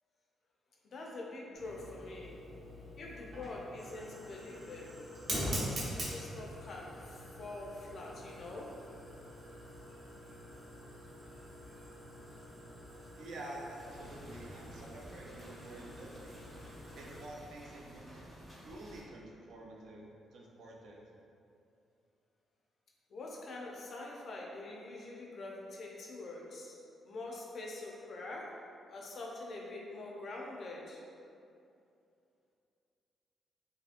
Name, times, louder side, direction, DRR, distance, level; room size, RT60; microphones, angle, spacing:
voice 1, 0.8-2.4 3.0-8.7 23.1-26.8 27.0-28.6 28.9-31.0, left 2 dB, 50° left, -2 dB, 0.4 m, -45 dB
Fire, 1.5-17.3, equal, 50° right, 0.8 m, -44 dB
voice 2, 13.2-16.4 16.9-18.3 18.6-20.0 20.3-21.0, right 1 dB, 75° right, -2 dB, 0.4 m, -49 dB
sound 1, 13.8-19.0, equal, 5° right, 0.6 m, -53 dB
2.8 x 2.6 x 2.4 m, 2.5 s
cardioid pair, 135°, 0 cm